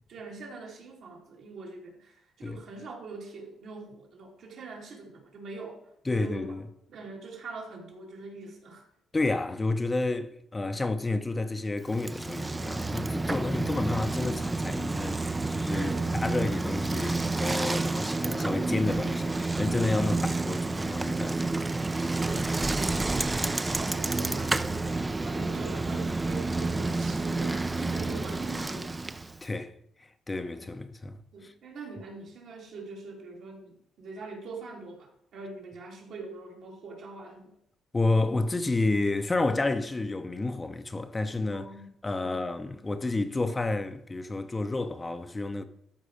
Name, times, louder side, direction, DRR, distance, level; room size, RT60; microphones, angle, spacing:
voice 1, 0.1-5.8 6.1-6.5 6.9-8.9 15.7-16.2 22.1-24.9 25.2-29.0 31.3-37.5 41.5-41.9 42.2-42.5, right 3 dB, 70° right, 3.2 m, -43 dB
voice 2, 6.1-6.6 9.1-15.9 16.2-21.5 29.4-29.7 30.0-31.5 37.9-41.6 42.0-45.6, left 2 dB, 20° left, 0.7 m, -30 dB
Bicycle, 11.9-29.4, right 2 dB, 20° right, 0.5 m, -29 dB
13.0 x 4.7 x 5.0 m
cardioid pair, 90°, 0 cm